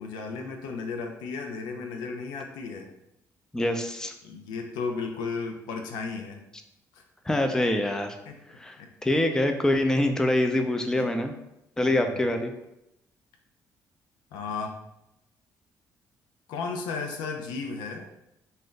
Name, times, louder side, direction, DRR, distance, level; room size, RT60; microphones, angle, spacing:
voice 1, 0.0-2.9 4.2-6.4 6.9-7.0 8.3-8.4 8.8-8.9 11.0-11.1 11.9-12.3 14.3-14.8 16.5-18.1, left 4 dB, 85° left, 4 dB, 0.4 m, -34 dB
voice 2, 3.5-4.1 7.3-8.2 8.6-8.8 9.0-11.3 11.8-12.5, left 1 dB, 10° left, 5 dB, 0.4 m, -25 dB
2.6 x 2.1 x 3.7 m, 0.86 s
supercardioid pair, 75°, 7 cm